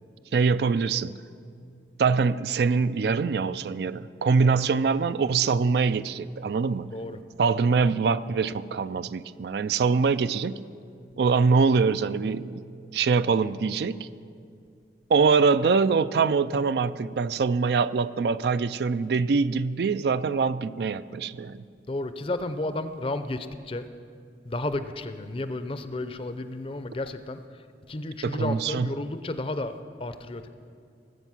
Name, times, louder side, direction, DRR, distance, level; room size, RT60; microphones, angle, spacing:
voice 1, 0.3-1.1 2.0-7.0 7.4-10.6 11.2-12.6 12.9-14.1 15.1-21.6 28.2-28.9, right 5 dB, 65° right, 0.4 m, -24 dB
voice 2, 21.9-23.9 24.5-27.4 27.9-30.5, left 2 dB, 30° left, 0.5 m, -32 dB
18.5 x 8.0 x 6.1 m
head